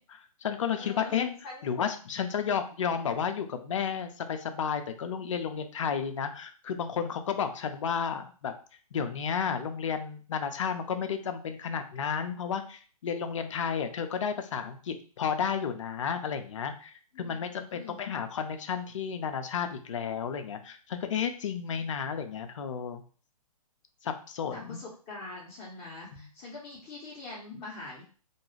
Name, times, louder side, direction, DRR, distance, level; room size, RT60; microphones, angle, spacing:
voice 1, 0.1-8.5 8.9-23.0 24.0-24.8 26.1-26.3, left 7 dB, 55° left, 7 dB, 0.4 m, -32 dB
voice 2, 0.8-1.1 1.4-1.7 17.1-18.0 24.5-28.0, left 2 dB, 25° left, -6 dB, 0.7 m, -44 dB
2.4 x 2.2 x 3.1 m, 0.40 s
figure-of-eight pair, 130°, 19 cm